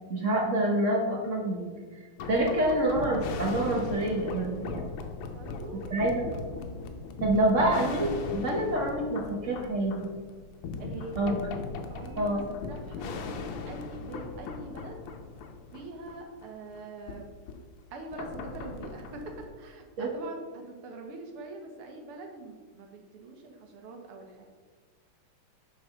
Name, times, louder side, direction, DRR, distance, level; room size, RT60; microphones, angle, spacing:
voice 1, 0.1-1.6 2.3-4.8 5.9-6.2 7.2-10.0 11.2-11.4 12.2-12.5 20.0-20.1, right 1 dB, 45° right, 0 dB, 1.2 m, -27 dB
sound 1, 2.2-16.8 17.1-17.2 17.5-17.6 18.1-19.5, left 4 dB, 85° left, 1.7 m, -39 dB
voice 2, 5.3-5.9 10.8-11.4 11.9-12.4 12.7-15.0 15.7-17.3 17.9-24.5, right 2 dB, 85° right, 3 dB, 2.0 m, -43 dB
7.2 x 4.8 x 5.7 m, 1.5 s
omnidirectional pair, 2.4 m